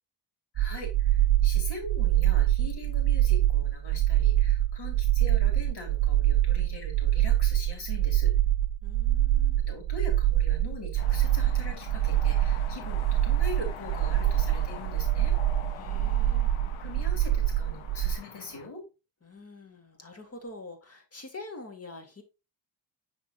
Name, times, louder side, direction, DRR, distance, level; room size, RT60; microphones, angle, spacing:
voice 1, 0.5-8.3 9.7-15.4 16.8-18.8, left 2 dB, 55° left, 2.9 m, -42 dB
sound 1, 0.6-18.2, right 12 dB, 70° right, 0.6 m, -25 dB
voice 2, 8.8-9.6 15.8-16.5 19.2-22.2, left 2 dB, 30° left, 2.0 m, -45 dB
sound 2, 11.0-18.7, left 9 dB, 75° left, 1.0 m, -44 dB
9.3 x 3.8 x 2.8 m
supercardioid pair, 60°, 49 cm